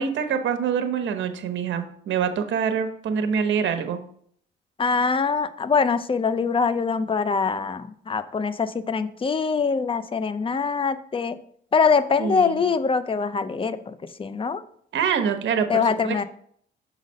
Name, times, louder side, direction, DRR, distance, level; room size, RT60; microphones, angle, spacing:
voice 1, 0.0-4.0 12.2-12.6 14.9-16.2, right 7 dB, 70° right, 8 dB, 0.9 m, -25 dB
voice 2, 4.8-11.4 11.7-14.6 15.7-16.2, left 5 dB, 25° left, 13 dB, 0.5 m, -23 dB
6.3 x 4.0 x 5.3 m, 0.62 s
cardioid pair, 90°, 20 cm